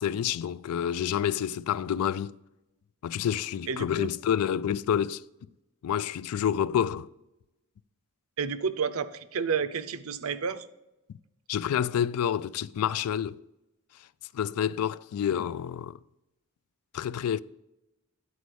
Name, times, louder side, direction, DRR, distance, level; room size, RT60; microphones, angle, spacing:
voice 1, 0.0-2.3 3.0-5.2 5.8-7.1 11.5-13.4 14.3-15.9 16.9-17.4, left 9 dB, 85° left, 0.3 m, -28 dB
voice 2, 3.7-4.1 8.4-10.7, right 6 dB, 70° right, 0.5 m, -30 dB
9.6 x 4.2 x 6.2 m
head